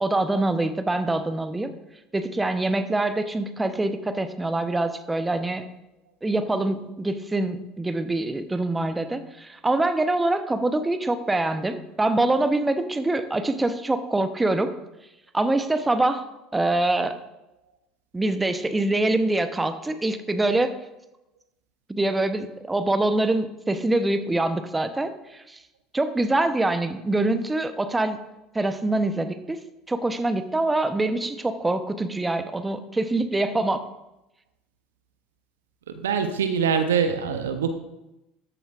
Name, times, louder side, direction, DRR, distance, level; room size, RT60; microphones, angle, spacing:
voice 1, 0.0-1.7 2.1-5.6 6.2-14.7 15.3-16.2 16.5-17.2 18.1-20.7 21.9-25.6 25.9-28.2 28.5-29.6 29.9-33.8, right 2 dB, 15° right, 9 dB, 0.7 m, -24 dB
voice 2, 35.9-37.8, right 6 dB, 80° right, 9 dB, 0.6 m, -24 dB
13.5 x 6.9 x 2.4 m, 0.93 s
hypercardioid pair, 70°, 0 cm